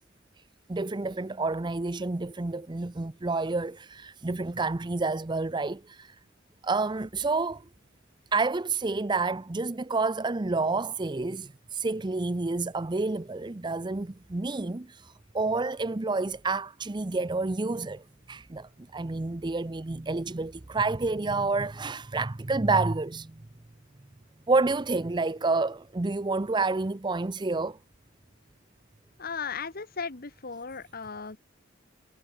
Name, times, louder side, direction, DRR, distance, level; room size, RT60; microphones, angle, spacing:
voice 1, 0.7-6.2 6.6-7.6 8.3-23.3 24.5-27.8, right 3 dB, 25° right, 0.6 m, -29 dB
voice 2, 29.2-31.4, left 5 dB, 50° left, 1.4 m, -36 dB
head